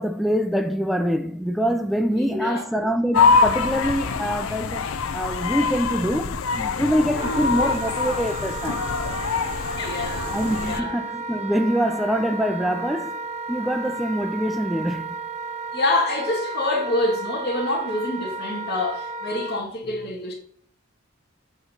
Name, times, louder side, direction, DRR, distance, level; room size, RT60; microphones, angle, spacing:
voice 1, 0.0-4.9 5.1-8.9 10.3-13.2 13.5-15.1, equal, ahead, 0.3 m, -24 dB
voice 2, 2.1-2.6 7.1-7.4 9.6-10.4 10.6-10.9 15.7-20.3, left 2 dB, 50° left, 1.9 m, -26 dB
sound 1, 3.1-10.8, left 5 dB, 90° left, 0.6 m, -24 dB
Wind instrument woodwind instrument, 7.1-19.6, right 3 dB, 35° right, 0.7 m, -33 dB
7.9 x 3.1 x 5.5 m
head